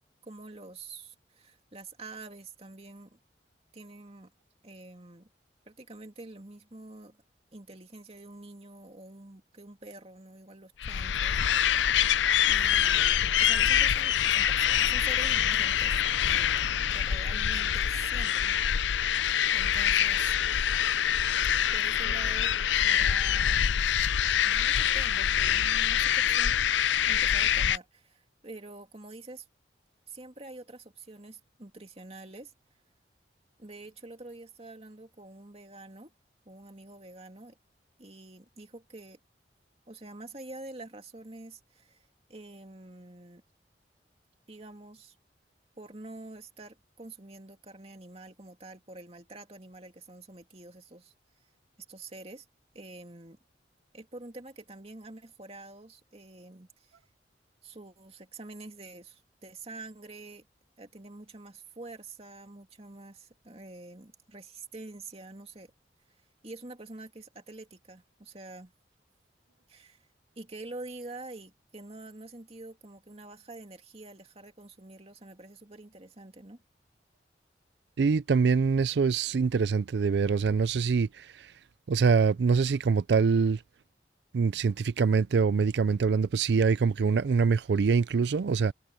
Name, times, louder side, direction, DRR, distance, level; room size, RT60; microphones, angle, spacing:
voice 1, 0.2-3.2 3.7-4.3 4.6-5.3 5.6-7.2 7.5-12.1 12.5-15.9 16.2-16.6 16.9-18.6 19.5-20.4 21.7-22.6 22.8-23.6 24.4-26.6 27.0-29.5 30.1-32.5 33.6-36.1 36.5-37.6 38.0-39.2 39.9-43.4 44.5-45.2 45.8-51.1 51.9-52.5 52.7-53.4 53.9-57.0 57.6-60.4 60.8-65.7 66.4-68.7 69.7-70.0 70.4-76.6, right 2 dB, 35° right, 2.5 m, -46 dB
sound 1, 10.8-27.8, left 9 dB, 90° left, 0.5 m, -25 dB
voice 2, 78.0-81.5 81.9-83.6 84.3-88.7, right 5 dB, 70° right, 0.4 m, -24 dB
head